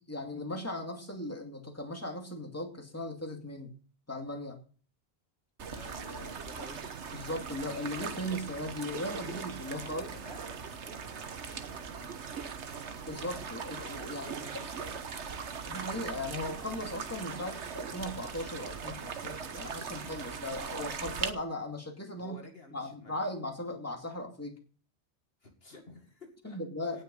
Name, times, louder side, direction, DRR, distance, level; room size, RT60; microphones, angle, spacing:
voice 1, 0.1-3.7 4.1-4.6 7.1-10.1 13.1-14.4 15.6-22.4 22.7-24.6 26.4-27.0, left 1 dB, 15° left, 3 dB, 2.4 m, -38 dB
sound 1, 5.6-21.3, right 6 dB, 85° right, 1.4 m, -40 dB
voice 2, 5.7-6.9 9.8-12.1 14.1-15.0 22.1-23.2 25.4-26.6 26.9-27.0, left 2 dB, 60° left, 3 dB, 2.3 m, -51 dB
18.0 x 6.5 x 5.4 m, 0.40 s
omnidirectional pair, 1.1 m